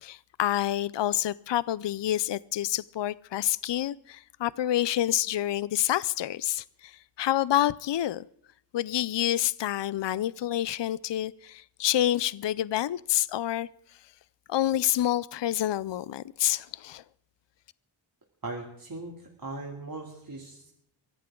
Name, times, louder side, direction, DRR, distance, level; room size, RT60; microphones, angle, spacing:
voice 1, 0.0-8.2 8.7-13.7 14.5-17.0, left 13 dB, 70° left, 0.5 m, -28 dB
voice 2, 18.4-20.7, right 2 dB, 45° right, 2.7 m, -39 dB
24.0 x 15.0 x 3.8 m
wide cardioid pair, 80°, 46 cm